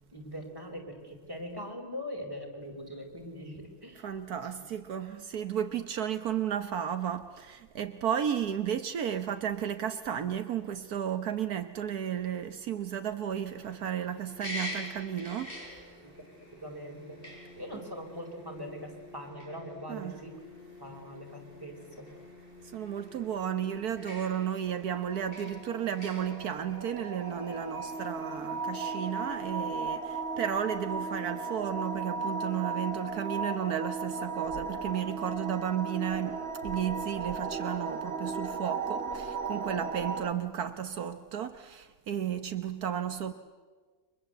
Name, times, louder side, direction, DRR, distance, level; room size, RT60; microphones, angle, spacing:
voice 1, 0.1-4.0 4.6-4.7 16.0-16.1 16.6-17.3 17.6-20.4 20.8-22.2, equal, 15° right, 4.7 m, -42 dB
voice 2, 4.0-15.6 19.9-20.1 22.6-43.3, right 9 dB, 75° right, 1.6 m, -33 dB
sound 1, 13.4-29.4, left 1 dB, 35° left, 7.2 m, -47 dB
sound 2, 24.9-40.3, right 4 dB, 40° right, 2.0 m, -36 dB
30.0 x 24.5 x 7.9 m
omnidirectional pair, 1.6 m